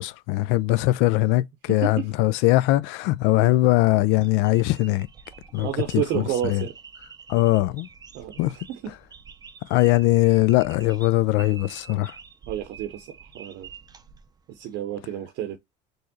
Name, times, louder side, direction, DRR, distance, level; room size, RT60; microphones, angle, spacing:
voice 1, 0.0-5.1 5.5-6.6 7.3-7.9 8.4-8.6 9.7-12.2, left 17 dB, 70° left, 0.4 m, -21 dB
voice 2, 1.7-2.1 3.4-3.5 5.6-6.7 8.1-8.3 8.7-8.9 12.5-13.7 14.5-15.6, right 11 dB, 60° right, 0.7 m, -30 dB
sound 1, 3.9-14.8, right 6 dB, 20° right, 0.5 m, -47 dB
4.4 x 3.2 x 2.7 m
supercardioid pair, 100°, 20 cm